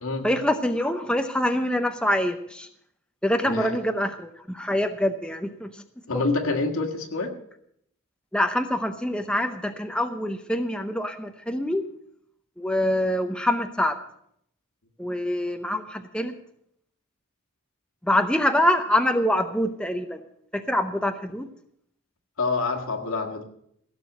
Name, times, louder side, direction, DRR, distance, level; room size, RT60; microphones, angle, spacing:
voice 1, 0.2-2.7 3.2-5.7 6.1-6.2 8.3-11.8 12.6-14.0 15.0-16.3 18.0-20.2 20.5-21.5, left 1 dB, 5° left, 6 dB, 0.7 m, -25 dB
voice 2, 3.5-3.8 6.1-7.3 22.4-23.4, left 3 dB, 80° left, 5 dB, 1.9 m, -27 dB
16.5 x 6.9 x 7.9 m, 0.71 s
head